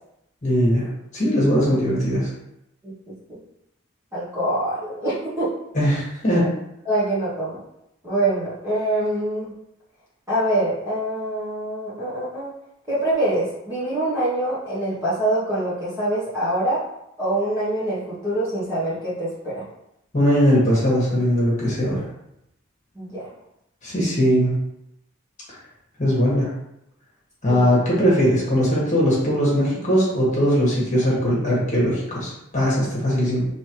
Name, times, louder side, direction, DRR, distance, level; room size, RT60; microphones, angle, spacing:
voice 1, 0.4-0.9 1.1-2.3 5.7-6.4 20.1-22.1 23.8-24.6 26.0-26.5 27.4-33.5, equal, 35° left, -6 dB, 1.7 m, -20 dB
voice 2, 4.1-5.5 6.8-7.6 8.0-9.5 10.3-12.5 12.9-16.8 17.2-19.6 22.9-23.3 27.5-27.8, right 1 dB, 15° right, -10 dB, 1.4 m, -25 dB
5.4 x 3.1 x 3.1 m, 0.83 s
head